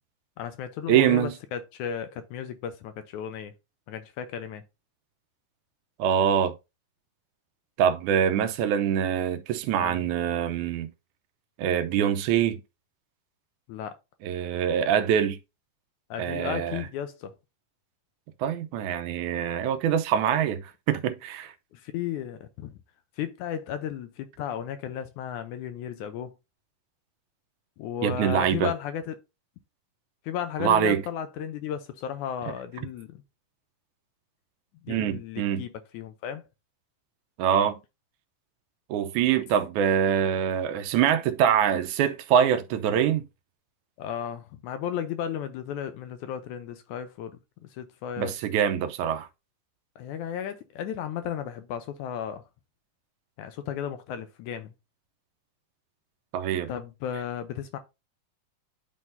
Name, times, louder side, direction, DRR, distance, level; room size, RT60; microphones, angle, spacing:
voice 1, 0.4-3.5 3.9-4.6 9.8-10.0 13.7-13.9 16.1-17.3 21.7-22.7 23.2-26.3 27.8-29.2 30.3-33.2 34.8-36.4 44.0-48.4 50.0-52.4 53.4-54.7 56.7-57.8, left 9 dB, 75° left, 1.9 m, -34 dB
voice 2, 0.9-1.3 6.0-6.5 7.8-10.9 11.6-12.6 14.2-15.4 16.2-16.8 18.4-21.5 28.0-28.7 30.6-31.0 34.9-35.6 37.4-37.8 38.9-43.2 48.2-49.3 56.3-56.7, right 9 dB, 75° right, 2.0 m, -24 dB
11.0 x 3.8 x 2.6 m
omnidirectional pair, 3.8 m